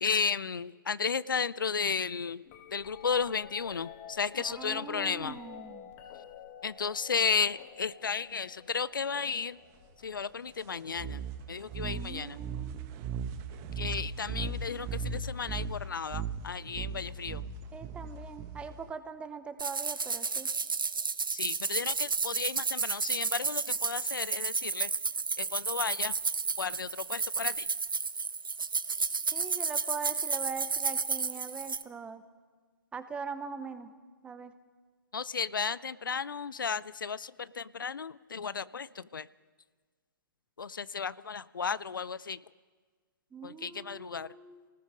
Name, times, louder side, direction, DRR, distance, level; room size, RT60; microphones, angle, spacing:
voice 1, 0.0-2.4 2.7-5.4 6.6-9.6 10.0-11.2 11.5-12.4 13.8-17.4 21.3-24.9 25.4-26.1 26.6-27.7 35.1-39.3 40.6-42.4 43.4-44.3, left 6 dB, 70° left, 18 dB, 0.6 m, -33 dB
sound 1, 2.4-12.6 13.5-13.9 14.7-15.6 17.4-17.5, left 9 dB, 30° left, 1.9 m, -51 dB
voice 2, 4.4-5.9 11.8-13.0 17.7-20.5 29.3-32.2 32.9-33.9 34.2-34.5 43.3-44.7, right 5 dB, 10° right, 11 dB, 1.0 m, -42 dB
sound 2, 10.9-18.9, right 5 dB, 25° right, 1.2 m, -37 dB
sound 3, 19.6-31.8, right 4 dB, 75° right, 1.0 m, -32 dB
28.5 x 19.0 x 5.1 m, 1.5 s
figure-of-eight pair, 130°, 11 cm